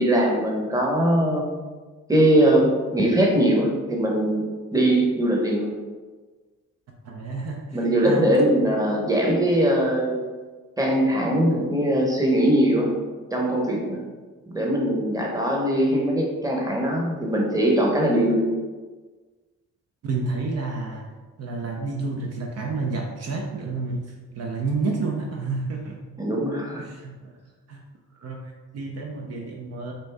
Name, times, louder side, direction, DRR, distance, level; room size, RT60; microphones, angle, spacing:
voice 1, 0.0-1.4 2.1-5.7 7.7-10.2 10.8-13.0 13.3-14.0 14.5-18.5 26.2-26.8, right 1 dB, 10° right, -1 dB, 0.9 m, -21 dB
voice 2, 7.0-8.3 20.0-21.1 21.4-26.0 26.8-27.4 27.7-27.8 28.1-29.9, right 3 dB, 55° right, 1 dB, 0.6 m, -30 dB
4.3 x 2.7 x 3.3 m, 1.4 s
cardioid pair, 90°, 30 cm